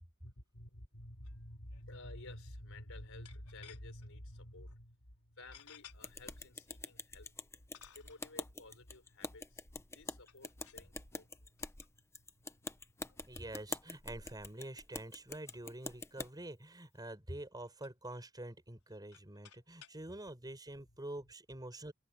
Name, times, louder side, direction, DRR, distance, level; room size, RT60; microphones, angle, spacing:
voice 1, 0.2-7.5 7.8-9.6 9.9-11.6 12.6-12.7 13.0-13.3, left 1 dB, 65° left, 5.0 m, -52 dB
sound 1, 1.2-1.4 1.7-1.8 3.2-4.1 4.6-4.8 5.5-6.0 6.8-6.9 7.7-8.3 10.2-10.9 11.6-11.9 12.3-12.4 13.1-13.2 13.5-13.7 14.1-14.2 14.4-14.5 14.8-14.9 15.4-16.3 16.9-17.1 17.4-18.2 18.8-20.0, left 9 dB, 85° left, 4.8 m, -59 dB
sound 2, 6.0-16.3, left 3 dB, 10° left, 0.9 m, -46 dB
voice 2, 13.3-21.9, right 1 dB, 20° right, 5.9 m, -47 dB
head